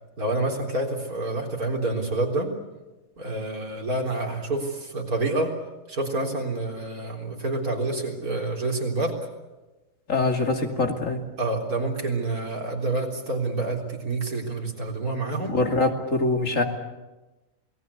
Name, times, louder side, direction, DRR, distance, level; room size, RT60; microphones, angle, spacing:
voice 1, 0.2-2.5 3.2-5.5 5.9-9.2 11.4-15.6, right 2 dB, 85° right, 1 dB, 4.2 m, -28 dB
voice 2, 10.1-11.2 15.5-16.6, left 2 dB, 60° left, 4 dB, 2.9 m, -24 dB
28.0 x 19.0 x 8.4 m, 1.1 s
omnidirectional pair, 1.5 m